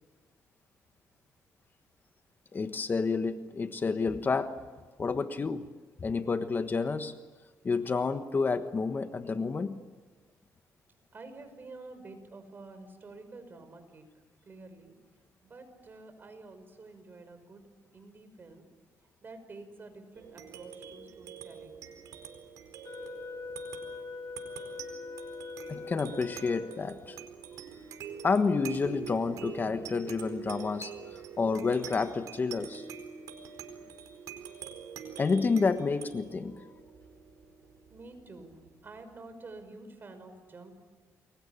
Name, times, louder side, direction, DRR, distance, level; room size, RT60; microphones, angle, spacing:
voice 1, 2.5-4.5 5.0-5.7 6.0-7.1 7.6-9.8 25.7-27.2 28.2-32.8 35.2-36.7, left 4 dB, 35° left, 9 dB, 1.4 m, -29 dB
voice 2, 11.1-14.0 14.5-14.9 15.4-17.6 17.9-18.7 19.2-21.9 37.9-38.6 38.8-40.7, right 3 dB, 35° right, 8 dB, 5.9 m, -49 dB
sound 1, 20.1-39.0, right 7 dB, 85° right, 4.4 m, -45 dB
Wind instrument woodwind instrument, 22.8-27.2, left 3 dB, 50° left, 4.2 m, -43 dB
29.0 x 22.5 x 8.7 m, 1.3 s
cardioid pair, 95°, 6 cm